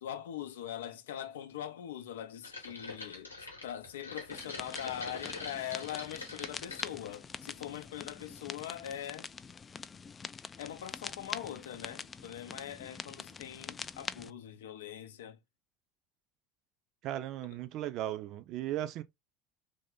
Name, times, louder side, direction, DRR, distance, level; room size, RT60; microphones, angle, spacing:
voice 1, 0.0-3.3 3.6-9.3 10.6-15.4, left 11 dB, 70° left, 0.6 m, -42 dB
sound 1, 2.4-6.9 7.4-7.9 8.2-8.3, left 3 dB, 85° left, 1.0 m, -44 dB
sound 2, 4.3-14.3, left 5 dB, 25° left, 0.3 m, -45 dB
voice 2, 17.0-19.0, right 13 dB, 50° right, 0.5 m, -36 dB
3.3 x 2.7 x 3.5 m
figure-of-eight pair, 70°, 0 cm